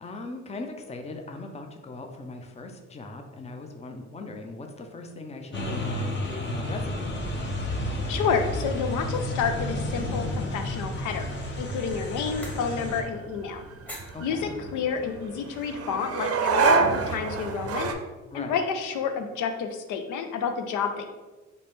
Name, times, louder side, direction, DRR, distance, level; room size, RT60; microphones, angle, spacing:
voice 1, 0.0-7.2 14.1-14.5 18.3-18.6, left 2 dB, 20° left, 4 dB, 0.5 m, -39 dB
sound 1, 5.5-13.0, left 1 dB, 40° left, 0.9 m, -31 dB
voice 2, 8.1-11.3 11.6-13.6 14.2-17.9 18.3-21.1, left 6 dB, 85° left, 6 dB, 0.5 m, -29 dB
sound 2, 8.3-17.9, right 5 dB, 50° right, 0.6 m, -30 dB
sound 3, 10.5-15.9, right 1 dB, 5° left, 1.0 m, -48 dB
4.1 x 3.1 x 3.5 m, 1.2 s
cardioid pair, 90°, 30 cm